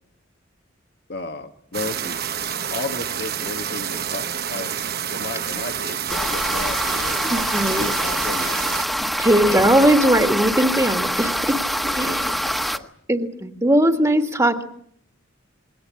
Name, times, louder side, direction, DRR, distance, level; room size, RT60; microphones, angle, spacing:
voice 1, 1.1-2.2 2.7-4.8 5.1-7.4 7.7-9.1 9.5-9.7 11.9-12.4 12.7-12.9, left 3 dB, 55° left, 6 dB, 1.5 m, -34 dB
sound 1, 1.7-8.8, right 8 dB, 50° right, 1.1 m, -28 dB
sound 2, 6.1-12.8, equal, ahead, 1.4 m, -25 dB
voice 2, 7.3-7.8 9.2-11.6 11.9-12.2 13.1-14.6, right 1 dB, 15° right, 5 dB, 1.8 m, -19 dB
28.0 x 22.0 x 8.5 m, 0.66 s
head